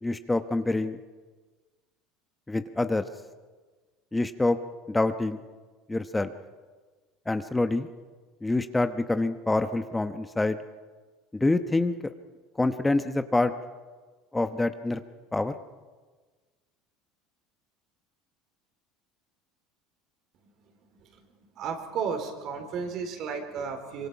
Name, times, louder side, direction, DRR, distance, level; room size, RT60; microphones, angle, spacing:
voice 1, 0.0-1.0 2.5-3.0 4.1-4.6 4.9-5.4 5.9-6.3 7.3-7.9 8.4-10.6 11.3-11.9 12.6-13.5 14.3-15.0 15.3-15.6, left 2 dB, 10° left, 9 dB, 1.0 m, -26 dB
voice 2, 21.5-24.1, right 6 dB, 55° right, 5 dB, 3.9 m, -33 dB
25.0 x 23.0 x 5.8 m, 1.4 s
hypercardioid pair, 85°, 0 cm